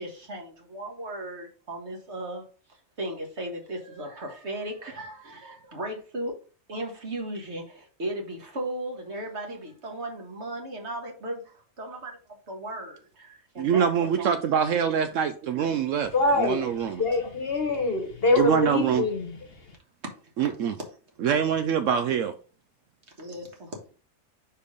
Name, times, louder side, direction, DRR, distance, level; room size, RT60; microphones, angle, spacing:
voice 1, 0.0-2.4 3.0-6.3 6.7-12.2 12.5-14.3 20.4-20.5 23.2-23.8, right 1 dB, 50° right, 1.8 m, -36 dB
voice 2, 13.6-16.1 16.4-17.0 18.4-19.0 20.4-20.7 21.2-22.3, right 8 dB, 70° right, 0.9 m, -24 dB
voice 3, 16.1-16.7 17.0-19.4, left 3 dB, 45° left, 1.3 m, -24 dB
5.0 x 4.5 x 5.2 m
omnidirectional pair, 1.5 m